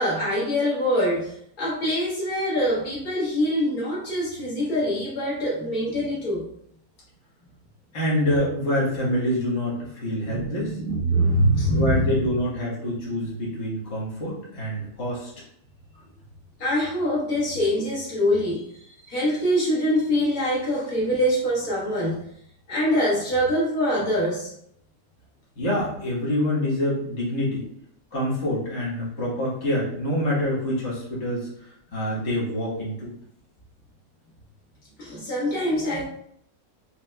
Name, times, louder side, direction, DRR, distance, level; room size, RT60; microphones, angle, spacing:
voice 1, 0.0-6.4 10.3-12.2 16.6-22.2 22.7-24.5 35.0-36.0, equal, 85° left, -6 dB, 1.9 m, -24 dB
voice 2, 7.9-10.8 11.7-15.3 25.5-27.7 28.1-33.1, left 1 dB, 50° left, -7 dB, 1.7 m, -26 dB
4.6 x 3.5 x 2.3 m, 0.70 s
omnidirectional pair, 1.5 m